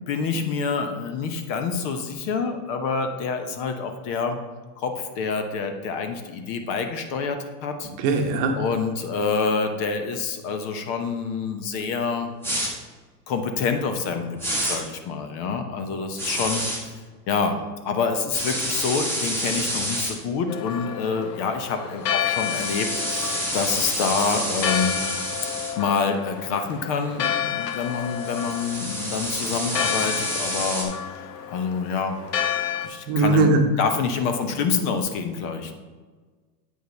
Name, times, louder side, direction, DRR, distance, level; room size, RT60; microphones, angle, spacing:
voice 1, 0.1-4.4 4.8-7.9 8.5-12.3 13.3-17.0 17.3-17.6 17.8-25.0 25.8-32.1 32.8-33.5 33.8-35.7, left 5 dB, 45° left, 6 dB, 0.9 m, -27 dB
voice 2, 8.0-8.6 33.1-33.6, right 3 dB, 40° right, 4 dB, 1.0 m, -20 dB
sound 1, 12.4-12.7 14.4-14.8 16.2-16.8 18.3-20.1 22.2-25.7 27.8-30.8, right 1 dB, 5° left, 1.6 m, -28 dB
Church bell, 20.5-32.9, left 9 dB, 80° left, 1.0 m, -30 dB
8.2 x 5.1 x 3.9 m, 1.4 s
supercardioid pair, 130°, 49 cm